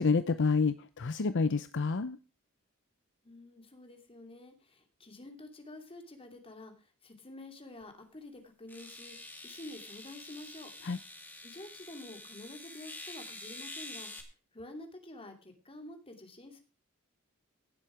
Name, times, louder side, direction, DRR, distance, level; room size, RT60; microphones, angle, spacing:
voice 1, 0.0-2.2 10.8-11.0, left 4 dB, 55° left, 12 dB, 0.6 m, -28 dB
voice 2, 3.2-9.2 9.4-10.7 11.4-14.1 14.5-16.6, left 1 dB, 25° left, 5 dB, 2.6 m, -49 dB
sound 1, 7.8-7.9 8.7-14.2, left 2 dB, 10° left, 2.2 m, -47 dB
17.0 x 7.5 x 4.9 m, 0.33 s
head